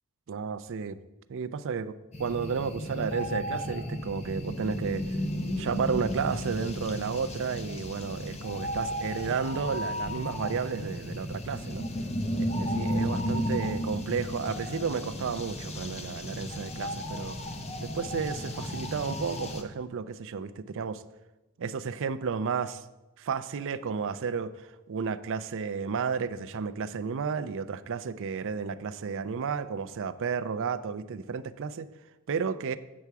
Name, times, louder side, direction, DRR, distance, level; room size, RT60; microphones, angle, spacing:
voice 1, 0.3-1.0 1.3-5.1 5.6-11.9 12.3-17.4 17.8-21.0 21.6-22.8 23.2-31.9 32.3-32.8, right 5 dB, 60° right, 13 dB, 0.4 m, -32 dB
sound 1, 2.1-19.6, equal, 30° left, 0.7 m, -34 dB
8.6 x 6.8 x 4.7 m, 1.0 s
head